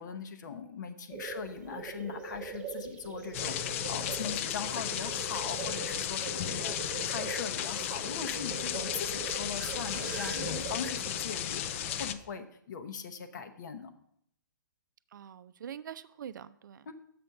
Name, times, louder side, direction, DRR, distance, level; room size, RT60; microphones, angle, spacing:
voice 1, 0.0-13.9 16.9-17.0, left 6 dB, 60° left, 0.9 m, -40 dB
sound 1, 1.1-12.1, right 6 dB, 10° right, 1.0 m, -42 dB
sound 2, 3.3-12.1, left 11 dB, 40° left, 0.4 m, -35 dB
sound 3, 6.7-12.2, right 5 dB, 40° right, 1.0 m, -51 dB
voice 2, 15.1-16.9, right 9 dB, 65° right, 0.4 m, -45 dB
6.9 x 4.4 x 6.4 m
hypercardioid pair, 135°, 11 cm